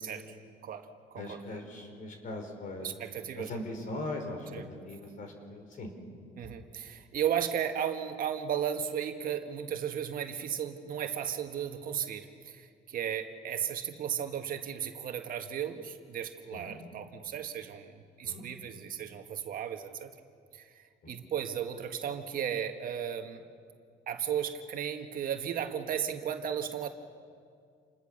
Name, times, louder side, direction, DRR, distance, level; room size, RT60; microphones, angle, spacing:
voice 1, 0.6-1.4 2.8-3.6 4.5-4.6 6.3-20.1 20.5-23.4 24.1-26.9, right 9 dB, 55° right, 6 dB, 1.7 m, -35 dB
voice 2, 1.1-2.9 3.3-5.9 16.5-16.8 18.2-18.5 21.0-21.1, left 2 dB, 50° left, 4 dB, 4.8 m, -40 dB
28.5 x 21.0 x 6.7 m, 2.2 s
cardioid pair, 110°, 17 cm